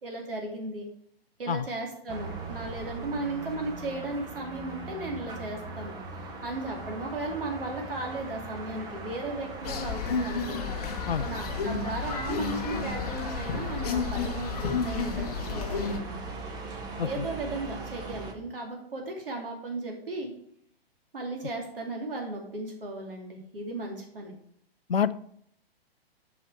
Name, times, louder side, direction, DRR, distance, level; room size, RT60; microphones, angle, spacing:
voice 1, 0.0-0.9 1.4-10.7 11.2-16.3 17.0-20.3 21.1-24.3, right 2 dB, 60° right, 1 dB, 2.7 m, -36 dB
voice 2, 1.5-1.7 11.1-11.3 17.0-17.2 24.9-25.1, left 7 dB, 70° left, 16 dB, 0.6 m, -27 dB
sound 1, 2.1-18.3, right 3 dB, 10° right, 0.9 m, -39 dB
sound 2, 9.6-16.0, left 5 dB, 40° left, 0.9 m, -32 dB
8.2 x 5.8 x 4.7 m, 0.68 s
figure-of-eight pair, 120°, 31 cm